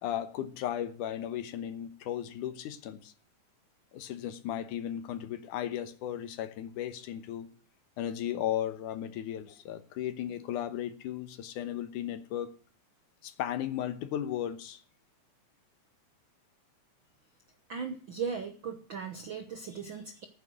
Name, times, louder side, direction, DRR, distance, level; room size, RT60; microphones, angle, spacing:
voice 1, 0.0-3.1 3.9-7.5 8.0-12.5 13.2-14.8, left 11 dB, 85° left, 2.6 m, -35 dB
voice 2, 17.7-20.3, right 6 dB, 55° right, 1.4 m, -37 dB
14.0 x 9.3 x 6.3 m
omnidirectional pair, 3.5 m